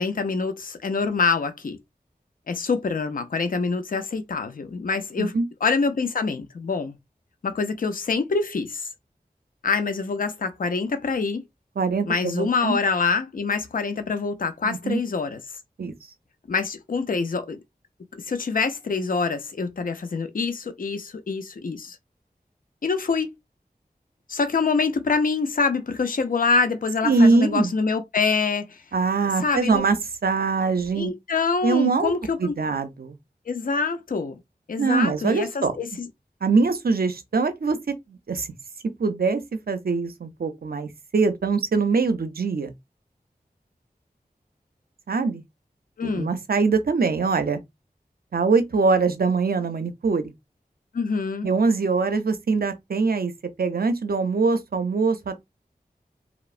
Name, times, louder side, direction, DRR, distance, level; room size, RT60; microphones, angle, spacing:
voice 1, 0.0-1.8 2.5-5.3 5.6-6.9 7.4-8.9 9.6-11.4 12.1-15.4 16.5-17.6 18.1-22.0 22.8-23.3 24.3-28.8 29.4-29.8 30.9-32.5 33.5-34.4 34.7-36.1 46.0-46.3 50.9-51.5, left 4 dB, 60° left, 0.4 m, -25 dB
voice 2, 11.8-12.8 14.6-15.0 15.8-15.9 27.0-27.7 28.9-30.0 30.2-31.1 31.6-32.1 32.4-33.2 34.8-35.8 36.4-38.5 39.0-39.4 39.7-42.7 45.1-45.4 46.0-47.6 48.3-50.3 51.4-53.3 53.6-55.4, right 4 dB, 70° right, 0.5 m, -23 dB
3.0 x 2.0 x 2.3 m
wide cardioid pair, 60°, 16 cm